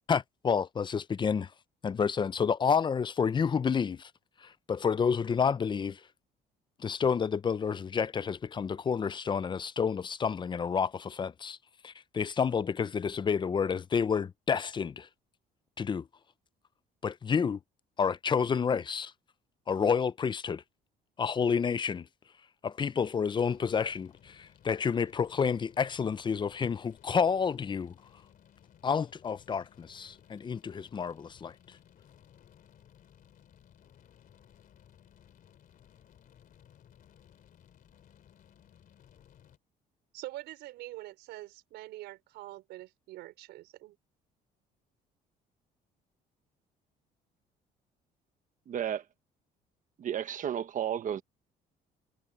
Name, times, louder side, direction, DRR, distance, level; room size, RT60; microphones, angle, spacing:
voice 1, 0.1-1.5 1.8-4.1 4.4-6.0 6.8-11.6 11.8-15.1 15.8-16.0 17.0-17.6 18.0-19.1 19.7-20.6 21.2-22.1 22.6-27.9 28.8-31.5, left 6 dB, 25° left, 0.6 m, -29 dB
sound 1, 23.4-39.6, left 9 dB, 55° left, 3.5 m, -59 dB
voice 2, 40.1-44.0, right 16 dB, 85° right, 4.7 m, -45 dB
voice 3, 48.7-49.0 50.0-51.2, right 9 dB, 50° right, 1.3 m, -32 dB
cardioid pair, 110°, 17 cm